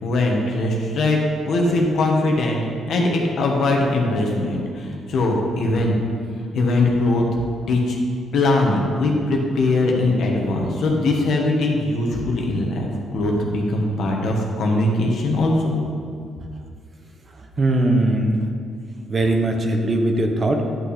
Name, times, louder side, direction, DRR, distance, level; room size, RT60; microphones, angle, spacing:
voice 1, 0.0-1.2 1.4-2.6 2.9-5.9 6.3-7.4 7.7-8.0 8.3-15.8, left 2 dB, 70° left, 0 dB, 1.5 m, -21 dB
voice 2, 17.6-18.4 19.1-20.6, right 1 dB, 35° right, 3 dB, 1.0 m, -19 dB
11.0 x 5.9 x 4.3 m, 2.3 s
cardioid pair, 90°, 0 cm